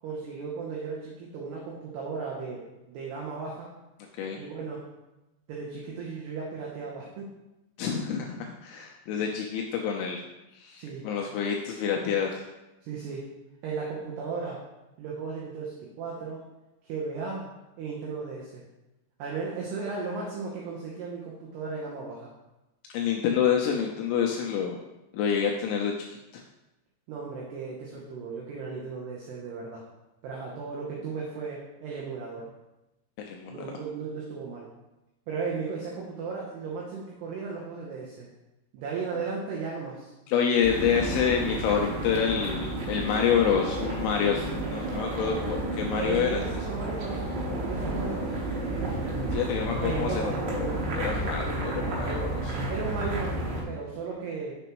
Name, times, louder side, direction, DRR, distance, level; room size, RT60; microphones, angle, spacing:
voice 1, 0.0-3.7 4.3-4.9 5.5-7.3 10.8-11.1 12.8-13.3 13.6-14.7 15.0-16.5 16.8-17.5 17.8-18.6 19.2-22.3 27.1-29.8 30.2-32.5 33.5-34.7 35.3-38.3 38.7-40.1 45.9-48.5 49.8-50.4 52.7-54.6, right 4 dB, 85° right, -3 dB, 2.3 m, -35 dB
voice 2, 7.8-10.2 10.6-12.4 22.9-24.8 25.1-26.0 26.3-26.4 33.2-33.8 40.3-46.4 49.3-50.3 51.0-52.6, left 7 dB, 85° left, 1 dB, 2.8 m, -27 dB
sound 1, 40.6-53.6, right 2 dB, 70° right, 3.0 m, -31 dB
7.1 x 6.8 x 3.0 m, 0.98 s
omnidirectional pair, 6.0 m